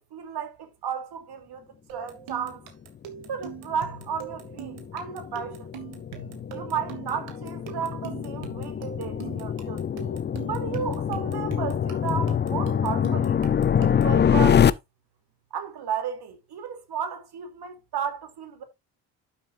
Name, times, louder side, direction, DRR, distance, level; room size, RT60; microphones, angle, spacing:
voice 1, 0.1-2.6 3.3-5.7 6.5-9.9 10.5-13.4 13.8-14.7 15.5-18.6, right 7 dB, 60° right, 3.0 m, -33 dB
sound 1, 1.9-14.2, right 9 dB, 85° right, 2.5 m, -42 dB
sound 2, 3.6-14.7, left 8 dB, 25° left, 0.4 m, -25 dB
11.5 x 7.4 x 2.6 m
cardioid pair, 110°, 44 cm